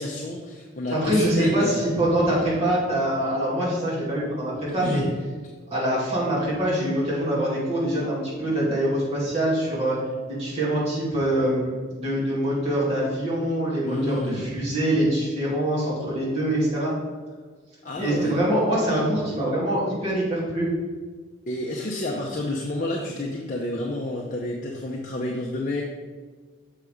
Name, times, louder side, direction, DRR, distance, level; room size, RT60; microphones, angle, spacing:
voice 1, 0.0-1.8 4.8-5.1 13.8-14.5 17.8-18.3 21.5-25.8, left 1 dB, 40° left, -2 dB, 0.7 m, -29 dB
voice 2, 0.9-5.0 5.7-10.0 10.3-16.9 18.0-20.7, right 1 dB, 30° right, -8 dB, 2.4 m, -24 dB
6.7 x 5.8 x 4.9 m, 1.5 s
head